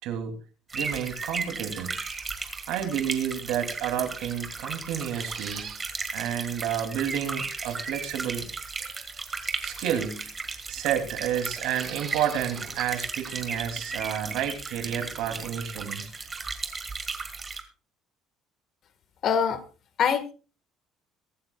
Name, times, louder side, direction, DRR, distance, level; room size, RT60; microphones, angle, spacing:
voice 1, 0.0-0.4 0.7-2.0 2.7-5.7 6.1-8.5 9.6-10.3 10.7-16.1, right 9 dB, 70° right, 6 dB, 3.0 m, -30 dB
sound 1, 0.7-17.6, right 4 dB, 20° right, 1.9 m, -35 dB
sound 2, 5.0-5.8 6.2-6.3 6.6-6.7 7.6-8.0 9.3-9.9 11.3-13.0 13.3-13.4, right 8 dB, 40° right, 2.0 m, -44 dB
voice 2, 19.2-19.6 20.0-20.3, left 7 dB, 45° left, 11 dB, 1.7 m, -23 dB
23.0 x 12.0 x 2.4 m, 0.34 s
cardioid pair, 150°, 0 cm